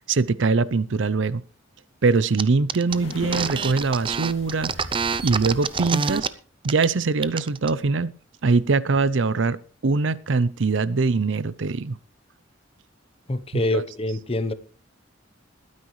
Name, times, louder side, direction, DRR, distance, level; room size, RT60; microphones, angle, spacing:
voice 1, 0.1-1.4 2.0-4.7 5.2-6.3 6.6-8.1 8.4-9.6 9.8-11.9 13.7-13.8, right 4 dB, 70° right, 0.6 m, -22 dB
sound 1, 2.4-2.5 2.7-6.3 6.6-6.9 7.2-7.7, right 5 dB, 25° right, 0.6 m, -26 dB
sound 2, 2.9-5.9, left 1 dB, 70° left, 2.2 m, -40 dB
voice 2, 13.3-14.5, left 1 dB, 30° left, 0.8 m, -25 dB
21.0 x 9.6 x 3.2 m
head